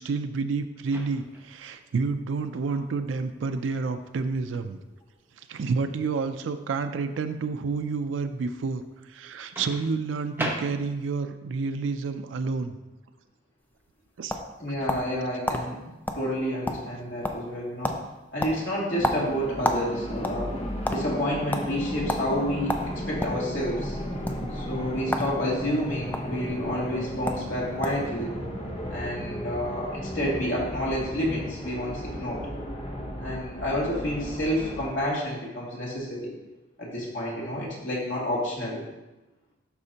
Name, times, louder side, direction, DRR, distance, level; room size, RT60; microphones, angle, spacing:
voice 1, 0.0-4.8 5.4-12.7 14.2-14.4, right 4 dB, 90° right, 8 dB, 0.4 m, -29 dB
Microwave oven, 0.8-1.5 3.5-3.7 9.6-11.2, right 1 dB, 10° right, 0.9 m, -36 dB
sound 1, 13.7-15.2 15.5-15.6 16.1-16.2 16.5-17.0 17.2-17.5 17.8-18.0 18.4-19.9 20.2-21.0 21.5-21.7 22.1-22.2 22.7-23.4 24.1-24.3 25.1-25.3 25.6-26.2 26.9-27.0 27.3-27.5 27.8-28.1, left 1 dB, 10° left, 0.5 m, -29 dB
voice 2, 14.6-15.8 16.1-17.9 18.3-20.6 20.9-24.0 24.5-28.4 28.9-32.4 33.2-36.3 36.8-38.9, equal, 80° left, -5 dB, 2.4 m, -29 dB
sound 2, 19.0-34.9, equal, 35° left, 0.9 m, -35 dB
11.5 x 4.3 x 2.8 m, 1.0 s
head